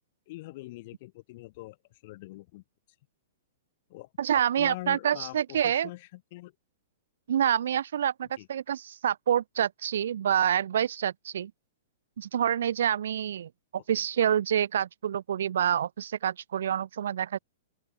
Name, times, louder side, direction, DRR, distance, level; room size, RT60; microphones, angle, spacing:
voice 1, 0.3-2.6 3.9-6.5 8.4-8.5 13.9-14.0, left 20 dB, 45° left, 6.7 m, -44 dB
voice 2, 4.2-5.9 7.3-11.5 12.2-17.4, right 9 dB, 60° right, 0.8 m, -27 dB
open air
figure-of-eight pair, 105°, 0 cm